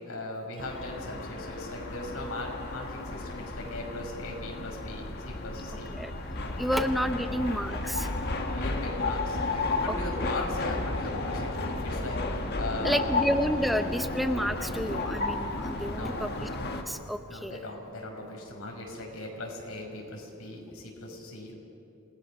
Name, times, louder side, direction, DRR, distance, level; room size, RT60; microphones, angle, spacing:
voice 1, 0.0-6.0 6.4-6.8 7.2-7.5 8.2-13.1 14.7-14.9 15.9-16.5 17.3-21.6, left 2 dB, 80° left, 0 dB, 5.3 m, -39 dB
sound 1, 0.6-16.8, left 2 dB, 50° left, 1.8 m, -33 dB
voice 2, 6.6-8.1 10.2-10.3 12.8-16.5 16.9-17.6 20.7-20.8, equal, ahead, 8 dB, 0.6 m, -30 dB
27.5 x 19.5 x 6.4 m, 2.7 s
head